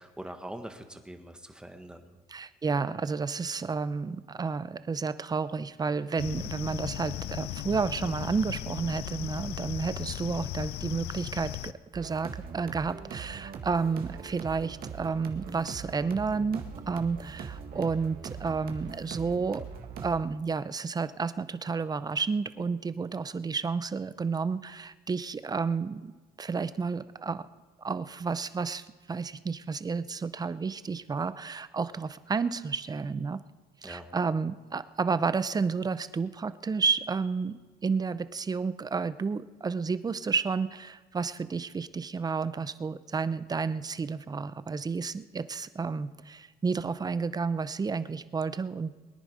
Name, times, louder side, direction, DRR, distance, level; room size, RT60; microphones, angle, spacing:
voice 1, 0.0-2.2 10.0-10.2 33.8-34.1, right 1 dB, 5° right, 6 dB, 1.5 m, -43 dB
voice 2, 2.3-19.6 20.0-26.1 26.4-27.4 27.8-33.4 33.8-48.9, right 5 dB, 25° right, 14 dB, 0.6 m, -31 dB
sound 1, 6.2-11.7, left 13 dB, 75° left, 0.5 m, -37 dB
sound 2, 11.9-20.2, right 6 dB, 60° right, 1.7 m, -41 dB
22.5 x 10.0 x 5.1 m, 1.3 s
cardioid pair, 110°, 17 cm